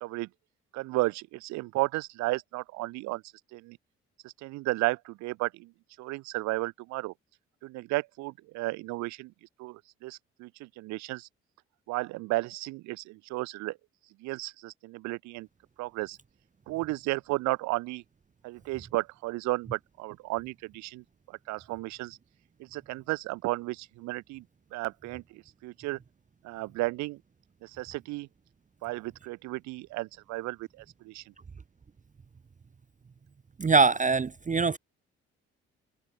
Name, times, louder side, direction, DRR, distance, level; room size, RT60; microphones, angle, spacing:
voice 1, 0.7-3.2 3.5-3.8 4.2-5.7 6.0-7.1 7.6-9.3 9.6-11.3 11.9-13.8 14.2-15.5 15.8-16.2 16.7-18.0 18.4-22.2 22.6-24.4 24.7-26.0 26.4-27.2 27.6-28.3 28.8-31.2, right 21 dB, 55° right, 0.7 m, -33 dB
voice 2, 33.6-34.8, right 4 dB, 20° right, 0.9 m, -23 dB
open air
figure-of-eight pair, 40°, 34 cm